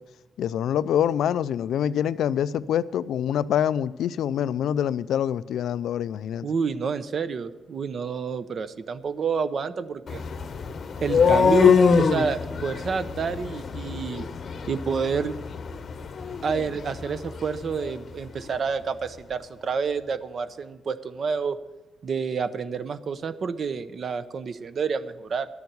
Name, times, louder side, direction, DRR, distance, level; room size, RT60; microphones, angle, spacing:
voice 1, 0.4-6.5, left 9 dB, 85° left, 0.4 m, -25 dB
voice 2, 6.4-10.2 11.0-14.3 14.7-15.4 16.4-21.6 22.0-25.5, right 5 dB, 50° right, 0.6 m, -29 dB
sound 1, 10.1-18.0, left 6 dB, 50° left, 0.8 m, -24 dB
12.0 x 7.1 x 7.9 m
cardioid pair, 125°, 0 cm